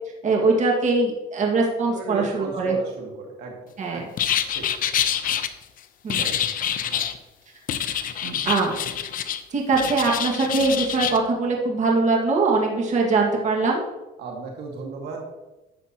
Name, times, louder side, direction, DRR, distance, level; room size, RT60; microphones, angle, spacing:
voice 1, 0.2-2.8 3.8-4.0 6.0-6.2 8.5-8.7 9.5-13.8, right 3 dB, 45° right, 0 dB, 1.9 m, -22 dB
voice 2, 1.9-3.6 3.9-4.1 4.5-4.7 6.2-6.4 6.8-7.0 8.2-8.4 14.2-15.2, right 4 dB, 75° right, 1 dB, 2.0 m, -35 dB
sound 1, 4.2-5.5 6.1-7.2 7.7-9.4 9.7-11.2, left 9 dB, 55° left, 0.7 m, -26 dB
11.5 x 8.0 x 3.0 m, 1.0 s
cardioid pair, 110°, 17 cm